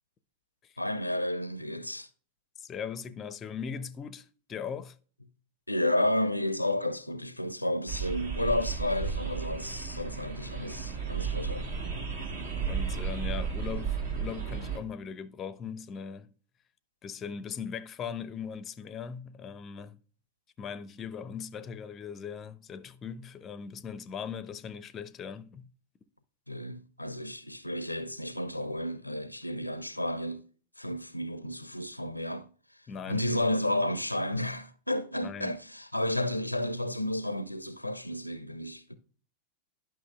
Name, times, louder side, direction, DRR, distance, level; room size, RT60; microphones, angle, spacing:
voice 1, 0.8-2.1 5.7-11.7 26.5-30.4 30.8-32.5 33.1-38.9, left 1 dB, 85° left, 0.4 m, -32 dB
voice 2, 2.6-5.0 12.7-16.3 17.0-20.0 20.6-25.7 32.9-33.2 35.2-35.6, left 7 dB, 25° left, 0.5 m, -39 dB
sound 1, 7.9-14.8, right 6 dB, 60° right, 1.5 m, -34 dB
11.0 x 5.9 x 2.3 m
figure-of-eight pair, 90°, 0 cm